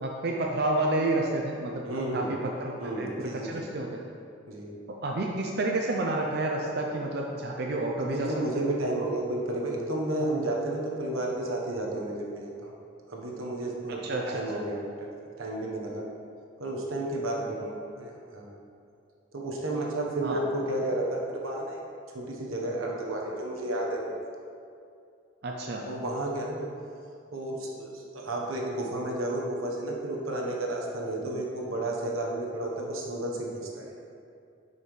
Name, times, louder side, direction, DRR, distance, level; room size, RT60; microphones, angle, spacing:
voice 1, 0.0-1.8 2.1-3.9 5.0-8.6 13.9-14.7 20.2-20.4 25.4-25.9, right 2 dB, 50° right, 0 dB, 0.5 m, -30 dB
voice 2, 1.8-2.3 2.8-3.6 4.5-4.8 8.0-12.7 13.1-14.0 14.3-14.9 15.4-16.0 16.6-18.5 19.3-21.8 22.1-24.1 25.8-26.7 27.3-33.9, right 1 dB, 90° right, -1 dB, 1.2 m, -32 dB
9.3 x 5.6 x 3.3 m, 2.5 s
head